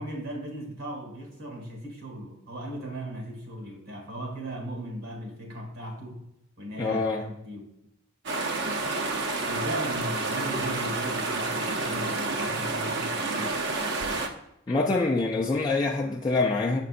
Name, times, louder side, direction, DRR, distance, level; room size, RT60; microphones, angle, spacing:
voice 1, 0.0-6.3 6.6-7.6 9.5-13.6, right 1 dB, 85° right, 1 dB, 1.7 m, -37 dB
voice 2, 6.8-7.2 14.7-16.8, left 3 dB, 20° left, -3 dB, 0.3 m, -25 dB
sound 1, 8.3-14.3, right 3 dB, 55° right, 0.6 m, -29 dB
7.5 x 5.2 x 2.5 m, 0.83 s
head